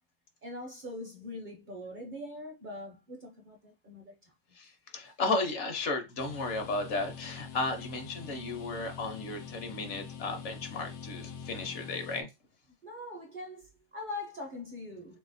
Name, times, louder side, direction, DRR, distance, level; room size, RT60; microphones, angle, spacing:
voice 1, 0.4-4.1 5.0-5.1 12.8-15.2, left 2 dB, 50° right, 0.6 m, -42 dB
voice 2, 4.9-12.3, left 3 dB, 60° left, 1.0 m, -34 dB
sound 1, 6.2-12.2, left 7 dB, 85° left, 1.1 m, -44 dB
2.8 x 2.8 x 4.0 m
omnidirectional pair, 1.5 m